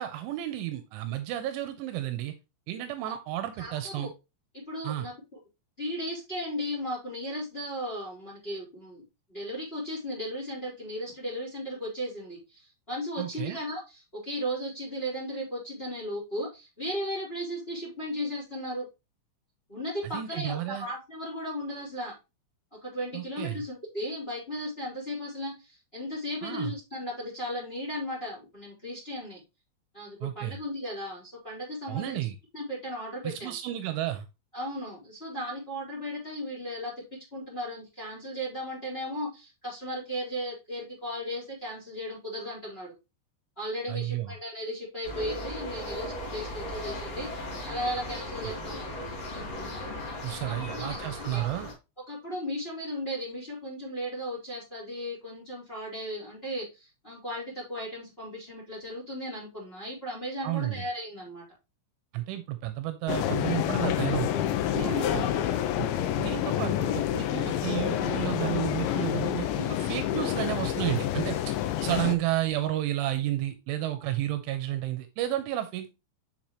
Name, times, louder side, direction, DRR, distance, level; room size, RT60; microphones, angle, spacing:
voice 1, 0.0-2.3 2.7-4.1 4.8-5.1 13.2-13.6 20.1-20.9 23.1-23.6 26.4-26.7 30.2-30.6 31.9-32.4 33.2-34.3 43.9-44.3 50.2-51.7 60.4-60.8 62.1-64.5 64.7-65.3 65.8-65.9 66.2-71.6 71.8-75.9, right 14 dB, 80° right, 9 dB, 3.0 m, -32 dB
voice 2, 3.6-4.1 4.5-5.1 5.8-9.0 9.3-18.9 19.7-22.1 22.7-29.4 29.9-32.2 32.5-33.5 34.5-36.9 37.3-42.9 43.6-47.3 47.6-49.2 50.4-51.5 52.1-61.4 64.7-65.4, equal, 15° left, -3 dB, 3.4 m, -36 dB
sound 1, 45.0-51.7, left 1 dB, 45° left, 2.4 m, -37 dB
sound 2, 63.1-72.2, left 11 dB, 85° left, 2.8 m, -28 dB
7.4 x 5.8 x 3.0 m, 0.26 s
omnidirectional pair, 5.7 m